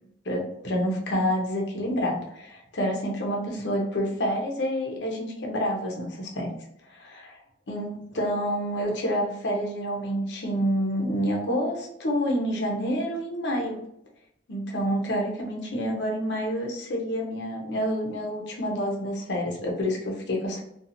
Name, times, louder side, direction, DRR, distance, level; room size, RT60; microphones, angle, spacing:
voice 1, 0.2-6.5 6.9-7.4 7.7-13.8 14.5-20.6, equal, 75° left, -1 dB, 0.7 m, -28 dB
2.7 x 2.4 x 2.6 m, 0.78 s
head